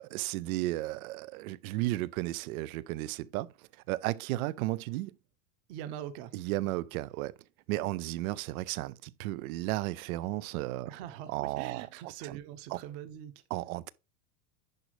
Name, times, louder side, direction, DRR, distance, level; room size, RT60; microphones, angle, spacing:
voice 1, 0.0-3.5 3.9-5.2 6.3-7.3 7.7-10.9 11.3-12.4 12.7-12.8 13.5-13.9, right 17 dB, 65° right, 0.6 m, -34 dB
voice 2, 5.7-6.3 10.9-13.4, right 11 dB, 45° right, 1.3 m, -43 dB
10.5 x 5.1 x 3.2 m
supercardioid pair, 160°, 47 cm